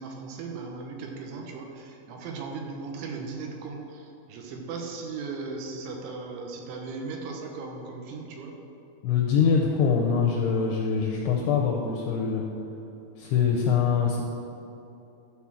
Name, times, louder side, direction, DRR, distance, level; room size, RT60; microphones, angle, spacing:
voice 1, 0.0-8.6, right 4 dB, 75° right, 1 dB, 3.2 m, -37 dB
voice 2, 9.0-12.5 13.2-14.2, left 6 dB, 85° left, -1 dB, 2.4 m, -24 dB
12.5 x 4.3 x 7.2 m, 2.8 s
omnidirectional pair, 5.6 m